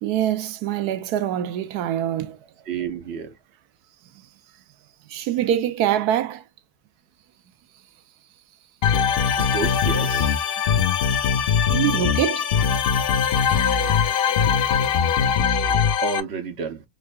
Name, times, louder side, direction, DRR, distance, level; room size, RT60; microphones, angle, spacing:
voice 1, 0.0-2.4 5.1-6.4 9.4-9.5 11.7-12.5 13.3-14.7, right 11 dB, 80° right, 1.1 m, -25 dB
voice 2, 2.7-3.3 9.5-10.3 16.0-16.8, right 5 dB, 55° right, 0.8 m, -29 dB
sound 1, 8.8-16.2, left 7 dB, 85° left, 0.5 m, -21 dB
3.7 x 3.2 x 2.3 m
omnidirectional pair, 1.7 m